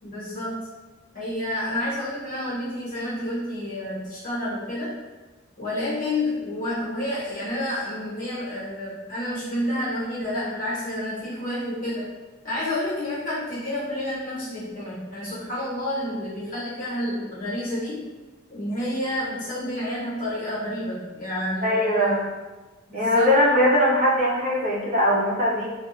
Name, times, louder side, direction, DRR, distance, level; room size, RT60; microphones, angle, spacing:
voice 1, 0.0-0.7 1.1-5.0 5.6-12.1 12.4-18.1 18.5-22.1 22.9-23.3, left 1 dB, 45° left, -10 dB, 1.0 m, -29 dB
voice 2, 21.6-22.3 22.9-25.7, left 1 dB, 40° right, -4 dB, 0.6 m, -20 dB
2.6 x 2.1 x 2.7 m, 1.2 s
head